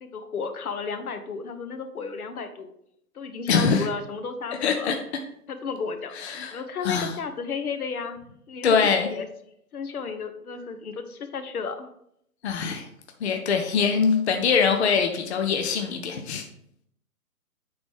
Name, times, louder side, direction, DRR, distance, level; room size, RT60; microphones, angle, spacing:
voice 1, 0.0-2.7 3.1-4.9 5.5-8.2 8.5-8.8 9.1-9.3 9.7-11.9, left 5 dB, 65° left, 8 dB, 1.0 m, -33 dB
voice 2, 3.5-3.9 4.6-5.0 6.2-7.1 8.6-9.1 12.4-12.9 13.2-16.4, left 6 dB, 45° left, 4 dB, 0.7 m, -23 dB
8.7 x 4.0 x 3.4 m, 0.73 s
hypercardioid pair, 140°, 47 cm